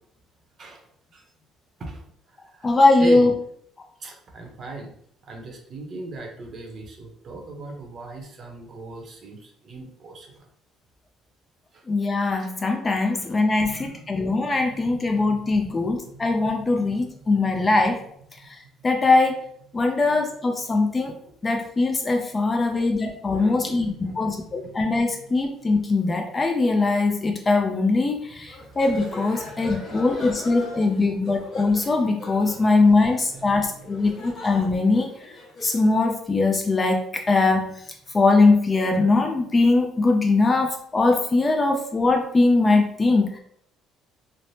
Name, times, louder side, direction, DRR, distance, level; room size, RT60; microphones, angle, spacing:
voice 1, 0.6-1.2 1.8-2.0 2.3-3.3 4.0-4.9 5.2-10.4 11.7-11.8 12.4-12.5 13.1-13.2 13.6-16.3 16.9-17.0 22.4-22.9 23.3-24.9 27.4-27.5 28.4-28.8 29.3-31.3 32.5-32.6 32.9-34.2, right 2 dB, 45° right, 1 dB, 0.7 m, -40 dB
voice 2, 2.6-3.3 11.9-18.0 18.8-19.4 19.7-21.1 21.4-35.1 35.6-37.7 38.1-43.4, left 3 dB, 25° left, 3 dB, 0.4 m, -21 dB
sound 1, 28.5-35.9, left 1 dB, 50° left, 1.2 m, -41 dB
3.1 x 2.0 x 2.7 m, 0.68 s
cardioid pair, 130°, 0 cm